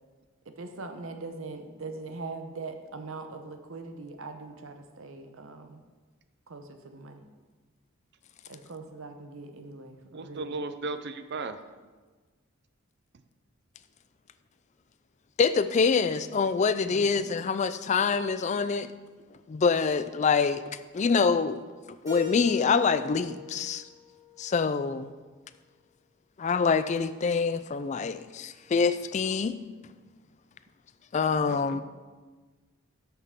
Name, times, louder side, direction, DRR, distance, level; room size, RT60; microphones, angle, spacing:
voice 1, 0.4-5.8 6.5-7.3 8.5-10.5 16.8-17.2, right 3 dB, 75° right, 6 dB, 0.8 m, -41 dB
voice 2, 10.1-11.6 31.5-31.8, right 3 dB, 55° right, 10 dB, 0.5 m, -36 dB
voice 3, 15.4-18.9 19.5-21.6 22.0-23.8 24.4-25.1 26.4-29.6 31.1-31.8, left 5 dB, 35° left, 13 dB, 0.3 m, -25 dB
Keyboard (musical), 22.1-25.0, left 11 dB, 15° right, 2.9 m, -40 dB
12.0 x 5.9 x 3.6 m, 1.3 s
head